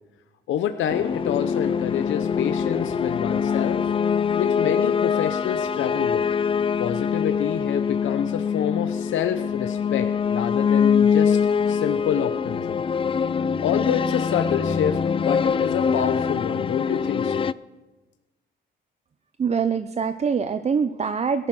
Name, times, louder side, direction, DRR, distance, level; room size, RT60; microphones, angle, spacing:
voice 1, 0.5-3.8 4.3-6.2 6.8-11.4 11.7-12.8 13.6-17.5, left 9 dB, 75° left, 8 dB, 0.8 m, -27 dB
sound 1, 0.9-17.5, left 6 dB, 25° left, 0.4 m, -23 dB
voice 2, 19.4-21.5, right 6 dB, 35° right, 11 dB, 0.6 m, -24 dB
17.0 x 11.5 x 6.1 m, 1.2 s
cardioid pair, 90°, 20 cm